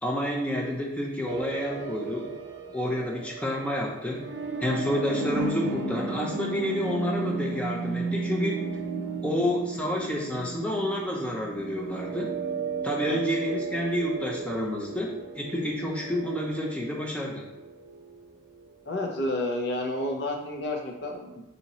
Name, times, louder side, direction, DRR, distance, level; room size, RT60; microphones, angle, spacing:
voice 1, 0.0-2.3 2.7-4.2 4.6-8.6 9.2-12.3 12.8-15.1 15.4-17.4, left 1 dB, 5° left, -2 dB, 0.5 m, -29 dB
sound 1, 1.3-18.9, right 3 dB, 65° right, 0.4 m, -34 dB
voice 2, 18.8-21.4, left 1 dB, 60° left, 1 dB, 0.6 m, -30 dB
2.8 x 2.8 x 4.0 m, 1.0 s
head